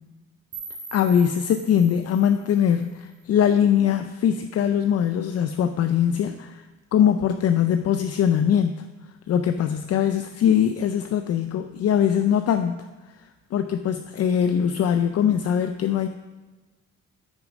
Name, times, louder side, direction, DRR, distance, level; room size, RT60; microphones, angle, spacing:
sound 1, 0.5-3.5, right 4 dB, 55° right, 1.9 m, -43 dB
voice 1, 0.9-6.6 6.9-8.8 9.3-12.8 13.5-16.1, left 8 dB, 55° left, 8 dB, 0.5 m, -22 dB
9.0 x 6.5 x 5.1 m, 1.2 s
cardioid pair, 90°, 30 cm